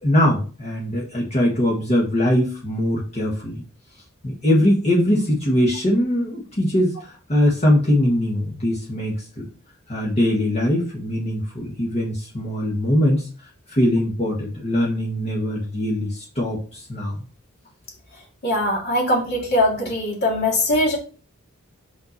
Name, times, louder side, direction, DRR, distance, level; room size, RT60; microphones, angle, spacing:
voice 1, 0.0-3.6 4.2-9.5 9.9-13.3 13.7-17.2, left 1 dB, 30° left, -4 dB, 1.7 m, -21 dB
voice 2, 18.4-21.0, left 1 dB, 50° left, -1 dB, 3.0 m, -21 dB
6.7 x 5.9 x 4.2 m, 0.37 s
head